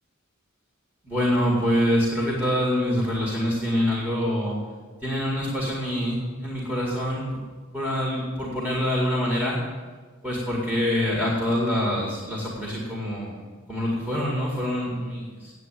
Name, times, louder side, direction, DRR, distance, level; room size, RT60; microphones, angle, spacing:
voice 1, 1.0-4.6 5.0-7.2 7.7-9.6 10.2-13.4 13.7-15.5, equal, 10° right, -4 dB, 2.0 m, -25 dB
9.0 x 7.9 x 9.0 m, 1.4 s
head